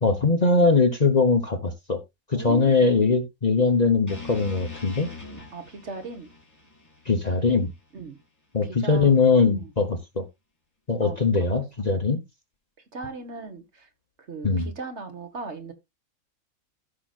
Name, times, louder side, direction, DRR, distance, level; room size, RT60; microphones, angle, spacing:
voice 1, 0.0-2.0 2.3-5.1 7.1-7.7 8.5-10.2 10.9-12.2 14.4-14.7, left 4 dB, 35° left, 1.0 m, -21 dB
voice 2, 2.3-2.9 5.5-6.3 7.9-8.2 8.6-9.1 9.5-9.7 11.0-11.2 11.5-11.6 12.9-13.9 14.2-15.7, right 4 dB, 55° right, 1.7 m, -38 dB
sound 1, 4.1-8.2, left 4 dB, 10° left, 3.5 m, -43 dB
15.0 x 5.9 x 2.4 m
omnidirectional pair, 1.5 m